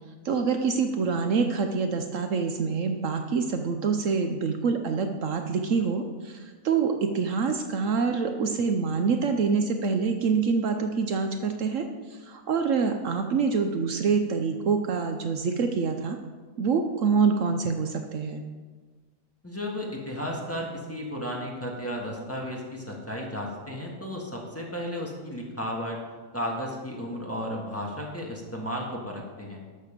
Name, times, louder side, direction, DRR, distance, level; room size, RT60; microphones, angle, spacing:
voice 1, 0.2-16.2 16.6-18.4, right 5 dB, 65° right, 6 dB, 1.0 m, -26 dB
voice 2, 19.4-26.0 26.3-29.6, equal, 10° left, -2 dB, 1.6 m, -34 dB
12.0 x 6.6 x 5.1 m, 1.4 s
omnidirectional pair, 1.5 m